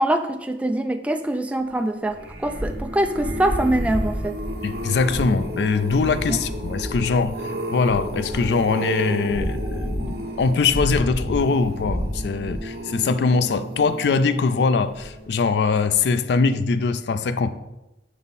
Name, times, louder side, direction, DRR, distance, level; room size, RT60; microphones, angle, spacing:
voice 1, 0.0-4.4 6.3-6.4, right 1 dB, 10° right, 0.3 m, -24 dB
sound 1, 2.1-15.4 15.9-16.3 16.5-16.6, equal, 65° right, 1.2 m, -30 dB
voice 2, 4.6-7.4 7.7-17.5, left 4 dB, 70° left, 0.4 m, -22 dB
5.4 x 4.7 x 4.1 m
head